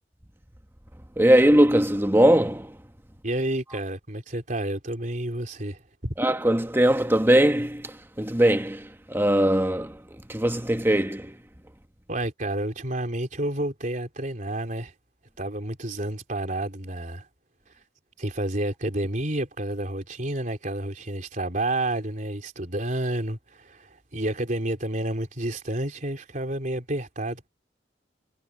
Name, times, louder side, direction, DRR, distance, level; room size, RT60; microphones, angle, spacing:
voice 1, 1.2-2.8 6.2-11.4, right 1 dB, 15° right, 1.3 m, -21 dB
voice 2, 3.2-6.1 12.1-14.9 15.4-17.3 18.2-27.5, right 1 dB, 45° right, 3.7 m, -30 dB
head